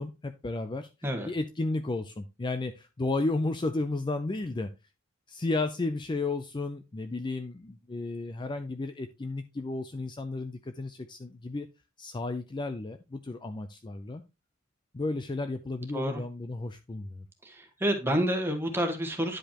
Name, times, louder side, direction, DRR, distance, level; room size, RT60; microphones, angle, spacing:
voice 1, 0.0-0.9 1.2-4.7 5.3-11.7 12.0-14.2 14.9-17.3, left 2 dB, 25° left, 8 dB, 0.4 m, -33 dB
voice 2, 17.8-19.4, equal, 10° right, 4 dB, 1.3 m, -28 dB
10.0 x 5.1 x 2.9 m, 0.26 s
head